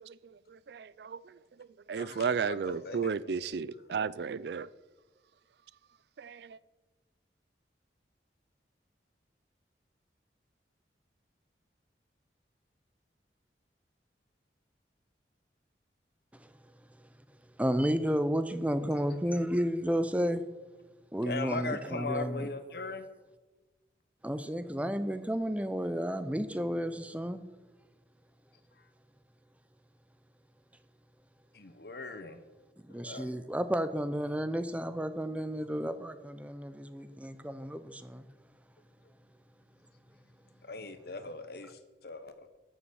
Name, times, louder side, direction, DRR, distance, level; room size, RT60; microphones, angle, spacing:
voice 1, 0.0-4.7 6.2-6.6, right 6 dB, 65° right, 0.4 m, -34 dB
voice 2, 1.9-3.4 3.7-3.8 19.1-19.2 21.3-23.1 28.7-28.9 31.5-32.4 32.9-33.3 35.6-35.7 37.1-37.2 39.0-39.1 40.2-40.3 40.6-42.5, left 3 dB, 60° left, 1.1 m, -40 dB
voice 3, 17.6-20.4 21.1-22.5 24.2-27.4 32.9-38.2, equal, 10° right, 0.6 m, -32 dB
13.5 x 7.1 x 7.0 m
head